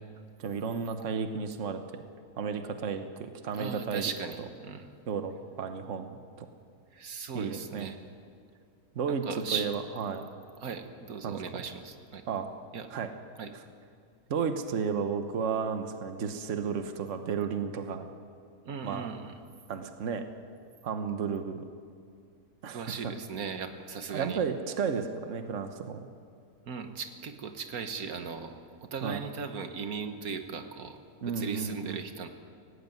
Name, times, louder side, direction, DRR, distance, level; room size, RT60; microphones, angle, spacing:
voice 1, 0.4-2.0 2.4-4.1 5.1-6.5 7.3-7.9 8.9-9.2 9.5-10.2 11.2-11.6 12.3-12.5 12.9-13.1 14.3-18.1 18.8-19.1 19.7-20.3 20.8-21.6 22.6-23.1 24.1-26.1 29.0-29.2 31.2-32.0, right 6 dB, 60° right, 7 dB, 1.4 m, -33 dB
voice 2, 3.5-4.9 6.9-8.0 9.1-9.7 10.6-12.2 12.7-12.9 13.4-13.5 18.6-19.4 22.7-24.4 26.6-28.5 28.8-31.0 31.3-32.3, right 6 dB, 85° right, 7 dB, 1.7 m, -37 dB
17.5 x 16.5 x 9.3 m, 2.3 s
omnidirectional pair, 1.5 m